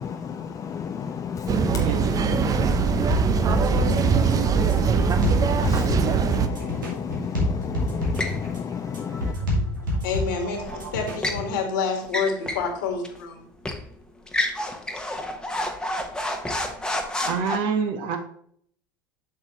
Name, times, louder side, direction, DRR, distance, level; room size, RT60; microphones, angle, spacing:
voice 1, 0.6-1.9 2.4-9.3, left 7 dB, 30° left, 6 dB, 0.5 m, -31 dB
voice 2, 1.4-2.2 17.1-18.2, right 6 dB, 55° right, 5 dB, 1.4 m, -28 dB
sound 1, 1.5-6.5, right 6 dB, 35° right, 0.6 m, -22 dB
sound 2, 3.1-11.6, left 1 dB, 85° right, 2.2 m, -28 dB
sound 3, 8.2-8.4 10.6-11.4 12.0-12.7 13.0-13.2 13.6-13.9 14.3-17.6, left 1 dB, 5° left, 1.1 m, -29 dB
voice 3, 10.0-13.4, left 5 dB, 70° left, 4 dB, 1.8 m, -28 dB
7.5 x 6.0 x 3.1 m, 0.62 s
hypercardioid pair, 75°, 11 cm